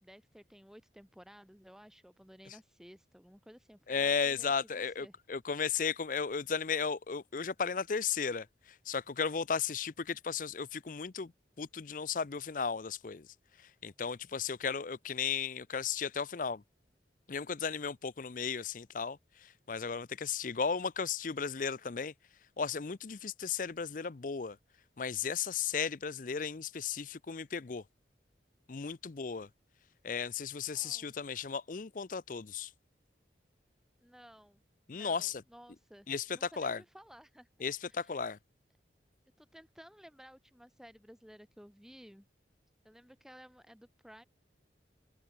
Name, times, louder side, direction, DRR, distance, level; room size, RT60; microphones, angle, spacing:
voice 1, 0.0-4.5 4.7-5.2 30.7-31.1 34.0-34.6 34.9-37.5 37.8-38.3 39.4-42.3 42.8-44.3, equal, 5° right, 3.0 m, -56 dB
voice 2, 3.9-8.5 8.9-11.3 11.6-13.3 13.8-16.6 17.3-19.2 19.7-22.1 22.6-24.6 25.0-27.8 28.7-29.5 30.0-32.7 34.9-35.4 36.1-36.8 37.6-38.4, left 6 dB, 45° left, 0.5 m, -35 dB
open air
head